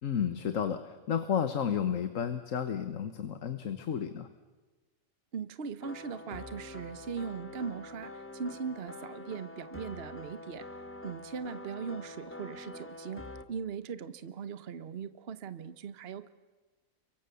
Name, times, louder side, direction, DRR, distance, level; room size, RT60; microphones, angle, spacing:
voice 1, 0.0-4.3, left 8 dB, 65° left, 10 dB, 1.5 m, -32 dB
voice 2, 5.3-10.6 11.0-16.3, right 6 dB, 50° right, 12 dB, 1.1 m, -39 dB
sound 1, 5.8-13.4, left 2 dB, 10° left, 0.9 m, -45 dB
29.0 x 24.5 x 7.0 m, 1.3 s
omnidirectional pair, 1.5 m